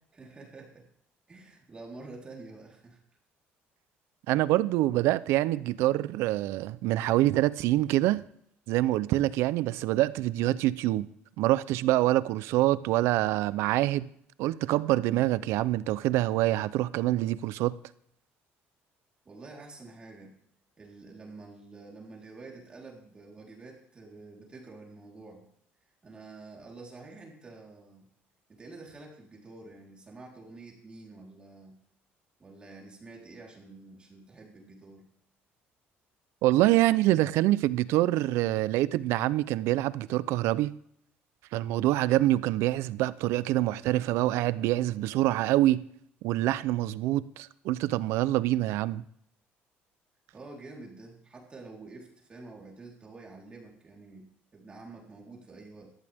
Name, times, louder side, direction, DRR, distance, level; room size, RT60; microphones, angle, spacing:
voice 1, 0.1-0.9 1.3-3.0 19.2-20.3 20.8-25.4 26.0-28.1 28.5-31.7 32.4-35.0 50.3-54.2 54.5-55.9, right 3 dB, 20° right, 4.0 m, -48 dB
voice 2, 4.3-8.2 8.7-11.1 11.4-14.1 14.4-17.7 36.4-40.7 41.5-45.8 46.2-49.0, right 15 dB, 85° right, 0.6 m, -25 dB
17.5 x 14.0 x 3.6 m
cardioid pair, 145°, 4 cm